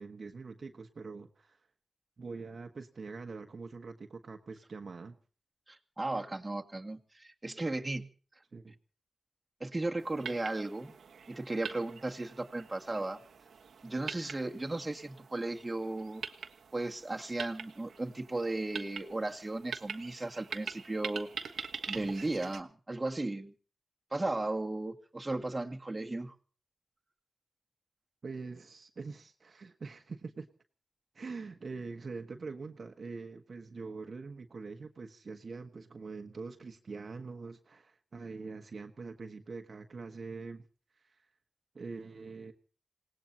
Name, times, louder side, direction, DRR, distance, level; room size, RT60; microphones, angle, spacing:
voice 1, 0.0-1.6 2.2-5.2 8.5-8.8 28.2-30.5 31.1-40.7 41.0-41.3 41.7-42.5, right 4 dB, 55° right, 1.4 m, -44 dB
voice 2, 5.7-8.1 9.6-10.9 11.3-13.2 13.8-16.2 16.7-21.5 21.9-23.5 24.1-26.3, right 2 dB, 25° right, 2.0 m, -35 dB
sound 1, 10.0-22.6, right 6 dB, 85° right, 1.3 m, -45 dB
27.0 x 18.5 x 2.8 m
cardioid pair, 65°, 0 cm